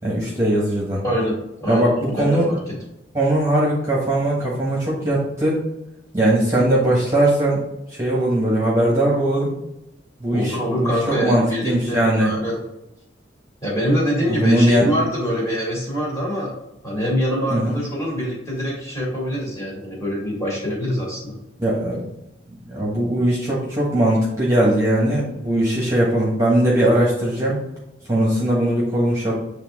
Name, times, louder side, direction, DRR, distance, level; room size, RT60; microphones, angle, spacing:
voice 1, 0.0-1.0 1.7-2.4 3.1-5.6 6.1-7.6 7.9-9.5 10.2-12.3 14.3-14.9 17.5-17.8 21.6-22.1 22.7-27.6 28.1-29.3, right 1 dB, 15° right, -5 dB, 1.4 m, -19 dB
voice 2, 1.0-2.7 10.3-12.5 13.6-16.5 16.8-21.4, equal, 15° left, -6 dB, 2.3 m, -24 dB
8.5 x 3.4 x 3.7 m, 0.89 s
head